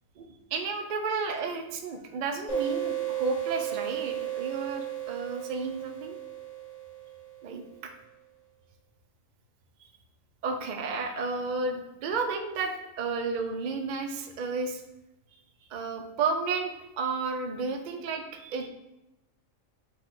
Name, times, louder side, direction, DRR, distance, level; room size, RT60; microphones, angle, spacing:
voice 1, 0.2-6.2 7.4-7.9 10.4-14.8 15.7-18.7, right 4 dB, 85° right, 5 dB, 0.4 m, -32 dB
sound 1, 2.5-7.8, right 11 dB, 60° left, 1.3 m, -34 dB
5.3 x 2.3 x 3.7 m, 0.95 s
omnidirectional pair, 1.4 m